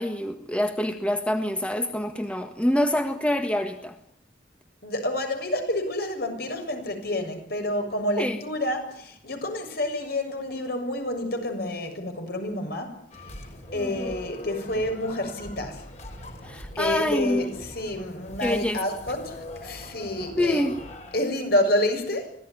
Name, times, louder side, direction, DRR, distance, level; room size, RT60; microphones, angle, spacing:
voice 1, 0.0-4.0 8.2-8.4 13.7-14.1 16.4-17.5 18.4-18.8 20.4-20.8, left 1 dB, 5° left, 1.6 m, -26 dB
voice 2, 4.8-13.0 13.7-15.9 16.8-20.7 21.1-22.3, left 1 dB, 60° left, 7.0 m, -28 dB
sound 1, 13.1-21.4, left 1 dB, 40° left, 5.1 m, -41 dB
25.0 x 18.0 x 9.8 m
head